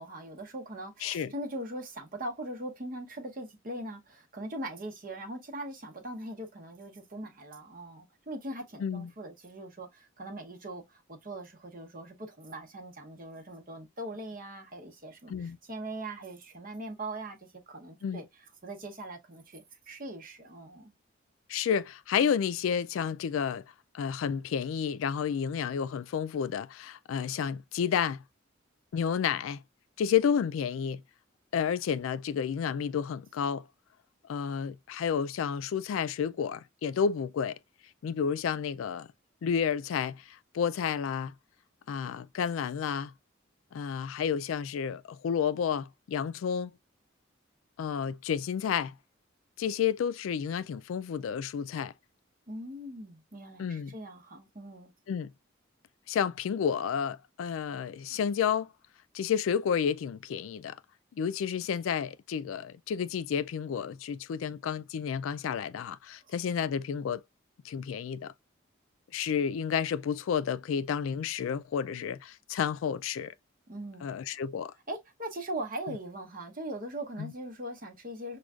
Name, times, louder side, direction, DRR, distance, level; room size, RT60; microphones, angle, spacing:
voice 1, 0.0-18.2 18.6-20.9 52.5-54.9 73.7-74.0 74.9-78.4, right 1 dB, 45° right, 0.9 m, -41 dB
voice 2, 1.0-1.3 8.8-9.1 15.3-15.6 18.0-18.2 21.5-23.6 23.9-28.2 28.9-29.6 30.0-31.0 31.5-33.7 34.3-37.6 38.0-39.1 39.4-41.3 41.9-43.1 43.7-46.7 47.8-48.9 49.6-51.9 53.6-53.9 55.1-55.3 56.1-58.7 59.1-60.8 61.2-67.2 67.6-68.3 69.1-73.3 74.0-74.7 77.2-77.3, left 7 dB, 85° left, 0.3 m, -31 dB
6.2 x 2.3 x 2.3 m
head